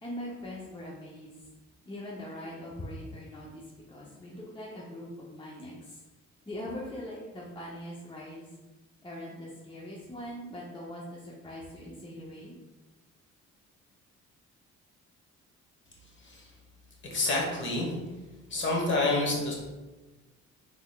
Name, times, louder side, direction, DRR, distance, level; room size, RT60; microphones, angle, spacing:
voice 1, 0.0-1.3 1.9-3.6 3.9-6.0 6.5-8.5 9.0-12.6, left 1 dB, 15° left, -4 dB, 0.6 m, -41 dB
voice 2, 17.1-17.9 18.5-19.5, left 2 dB, 40° left, -1 dB, 1.1 m, -28 dB
3.7 x 3.3 x 2.3 m, 1.2 s
cardioid pair, 90°, 30 cm